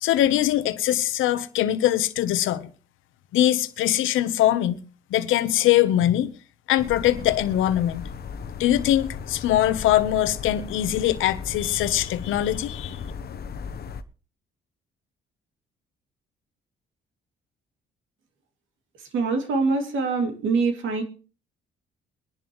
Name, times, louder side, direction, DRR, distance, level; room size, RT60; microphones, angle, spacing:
voice 1, 0.0-2.7 3.3-4.8 5.1-6.3 6.7-8.1 8.6-13.0, left 12 dB, 85° left, 1.0 m, -22 dB
sound 1, 6.8-14.0, left 6 dB, 50° left, 1.0 m, -36 dB
voice 2, 19.1-21.0, right 4 dB, 75° right, 2.8 m, -24 dB
22.5 x 11.0 x 3.1 m
cardioid pair, 90°, 20 cm